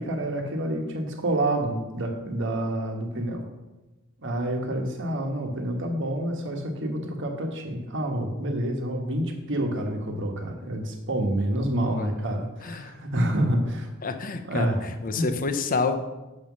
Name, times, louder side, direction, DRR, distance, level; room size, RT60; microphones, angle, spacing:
voice 1, 0.0-3.5 4.2-13.9 14.5-14.9 15.1-15.3, right 1 dB, 60° right, 3 dB, 1.3 m, -28 dB
voice 2, 12.6-12.9 14.0-15.9, left 4 dB, 40° left, 8 dB, 0.7 m, -28 dB
7.0 x 5.5 x 6.1 m, 1.1 s
head